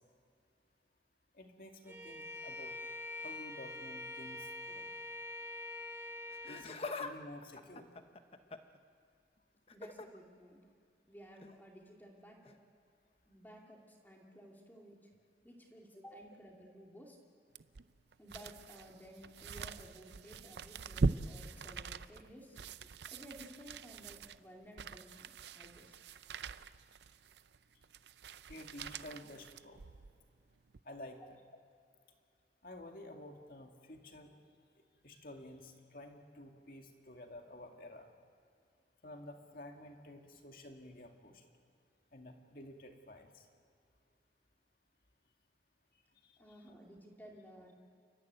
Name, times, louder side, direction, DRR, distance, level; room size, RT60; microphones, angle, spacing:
voice 1, 1.3-2.7 3.2-4.9 6.5-7.9 28.5-29.8 30.8-31.4 32.6-34.3 35.0-38.1 39.0-41.4 42.1-43.4 46.2-46.7, left 1 dB, 55° left, 3 dB, 2.3 m, -51 dB
Bowed string instrument, 1.9-6.7, left 2 dB, 15° right, 1.7 m, -45 dB
Laughter, 6.3-7.1 7.4-8.8 9.7-10.1 11.4-11.5 12.5-12.6, left 3 dB, 35° left, 0.9 m, -44 dB
voice 2, 9.7-10.6 11.1-12.6 13.3-15.0 15.4-17.2 18.2-22.6 23.1-26.0 31.2-31.3 46.4-47.7, equal, 10° left, -1 dB, 2.5 m, -55 dB
sound 1, 17.6-30.2 30.7-30.8, right 4 dB, 75° right, 0.6 m, -42 dB
30.0 x 14.0 x 9.3 m, 2.5 s
head